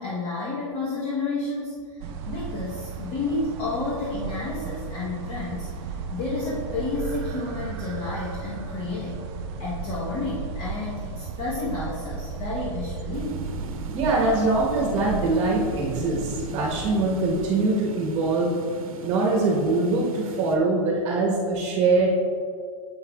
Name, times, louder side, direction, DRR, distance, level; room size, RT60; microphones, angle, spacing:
voice 1, 0.0-9.2 9.6-13.5, left 3 dB, 30° left, -6 dB, 1.0 m, -31 dB
sound 1, 2.0-17.5, right 5 dB, 50° right, 0.6 m, -35 dB
sound 2, 13.1-20.6, right 3 dB, 85° right, 0.8 m, -40 dB
voice 2, 13.9-18.5 19.0-22.1, right 3 dB, 35° right, -2 dB, 1.1 m, -23 dB
7.2 x 5.7 x 2.3 m, 2.2 s
hypercardioid pair, 135°, 18 cm